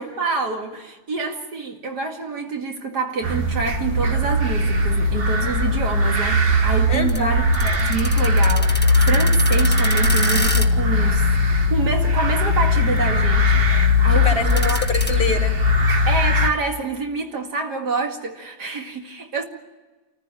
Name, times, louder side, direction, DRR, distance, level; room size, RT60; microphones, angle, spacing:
voice 1, 0.0-11.3 11.7-13.6 14.0-14.8 16.1-19.4, right 4 dB, 90° right, 2.8 m, -27 dB
sound 1, 3.2-16.5, left 2 dB, 40° right, 1.4 m, -19 dB
sound 2, 6.3-15.1, left 2 dB, 5° left, 1.3 m, -33 dB
voice 2, 6.9-7.3 14.2-15.5, left 3 dB, 35° left, 3.1 m, -25 dB
28.0 x 15.0 x 9.0 m
omnidirectional pair, 1.7 m